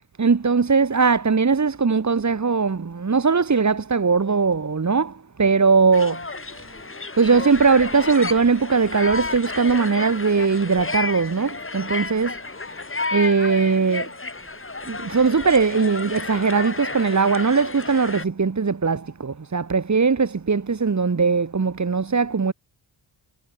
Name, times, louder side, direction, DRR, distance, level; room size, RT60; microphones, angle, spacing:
voice 1, 0.2-5.1 5.4-6.2 7.2-12.3 13.1-14.1 14.9-22.5, right 5 dB, 40° right, 3.8 m, -20 dB
sound 1, 5.9-18.2, left 3 dB, 30° left, 6.0 m, -31 dB
cardioid pair, 90°, 44 cm